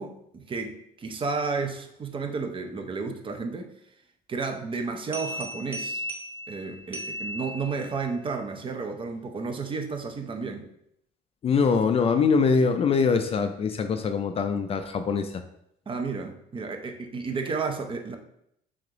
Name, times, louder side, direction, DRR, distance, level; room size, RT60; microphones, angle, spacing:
voice 1, 0.0-3.7 4.3-6.0 6.5-10.7 15.9-18.2, right 4 dB, 30° right, 5 dB, 0.5 m, -32 dB
sound 1, 5.1-8.1, equal, 10° right, 1.2 m, -36 dB
voice 2, 11.4-15.4, left 5 dB, 35° left, 8 dB, 0.4 m, -23 dB
3.5 x 3.2 x 3.8 m, 0.74 s
cardioid pair, 110°, 17 cm